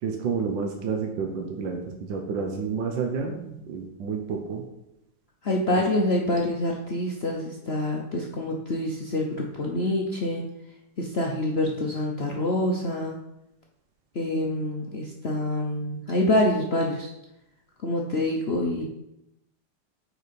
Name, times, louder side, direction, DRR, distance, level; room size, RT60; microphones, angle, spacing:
voice 1, 0.0-4.6, right 5 dB, 90° right, 3 dB, 1.5 m, -30 dB
voice 2, 5.4-10.4 11.0-13.2 14.1-17.1 17.8-18.8, left 1 dB, 50° left, -1 dB, 0.8 m, -26 dB
6.5 x 4.7 x 5.1 m, 0.86 s
omnidirectional pair, 2.0 m